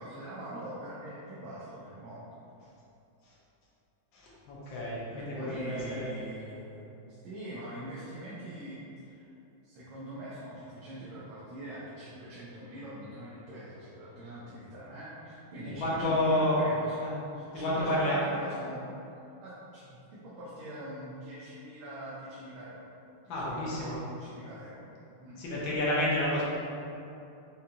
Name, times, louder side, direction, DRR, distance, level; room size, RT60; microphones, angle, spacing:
voice 1, 0.0-2.4 5.1-6.8 7.2-9.3 9.6-16.9 17.3-18.8 19.4-22.8 23.2-24.9 25.2-25.4, right 1 dB, 90° right, -8 dB, 1.5 m, -43 dB
voice 2, 4.1-6.1 15.6-16.5 17.0-17.1 17.5-18.2 23.3-24.0 25.4-26.4, left 1 dB, 75° left, -6 dB, 1.5 m, -30 dB
5.1 x 2.3 x 2.8 m, 2.7 s
omnidirectional pair, 2.1 m